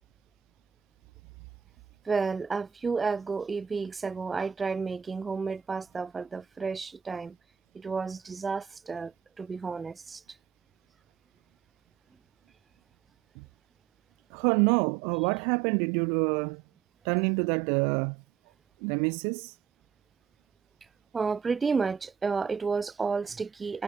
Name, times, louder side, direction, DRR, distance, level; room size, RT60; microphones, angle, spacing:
voice 1, 2.1-7.4 7.7-9.1 9.4-10.2 21.1-23.8, right 4 dB, 25° right, 4.2 m, -31 dB
voice 2, 14.3-16.6 17.0-18.2 18.8-19.6, right 39 dB, 60° right, 1.4 m, -27 dB
figure-of-eight pair, 55°, 0 cm